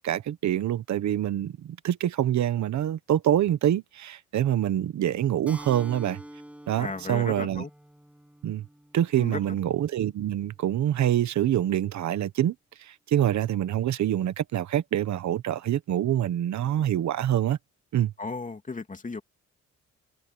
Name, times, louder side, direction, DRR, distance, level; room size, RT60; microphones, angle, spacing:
voice 1, 0.0-6.2 6.7-7.6 8.4-8.6 8.9-17.6 17.9-18.1, right 11 dB, 70° right, 1.3 m, -26 dB
Keyboard (musical), 5.5-10.6, right 1 dB, 5° right, 6.8 m, -48 dB
voice 2, 6.8-7.7 9.2-9.6 18.2-19.2, left 3 dB, 25° left, 2.9 m, -35 dB
cardioid pair, 90°, 30 cm